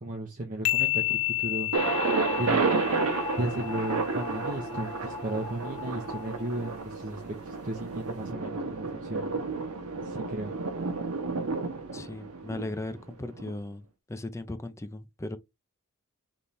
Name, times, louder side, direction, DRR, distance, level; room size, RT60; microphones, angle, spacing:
voice 1, 0.0-1.9 2.4-2.7 3.4-9.3 10.0-10.5, right 1 dB, 40° right, 0.8 m, -35 dB
sound 1, 0.6-4.2, left 16 dB, 90° left, 0.7 m, -31 dB
sound 2, 1.7-6.8, left 3 dB, 50° left, 1.5 m, -38 dB
Thunder, 1.7-13.5, right 4 dB, 85° right, 0.9 m, -31 dB
voice 2, 11.9-15.4, left 2 dB, 15° left, 0.5 m, -37 dB
3.5 x 3.2 x 4.1 m
head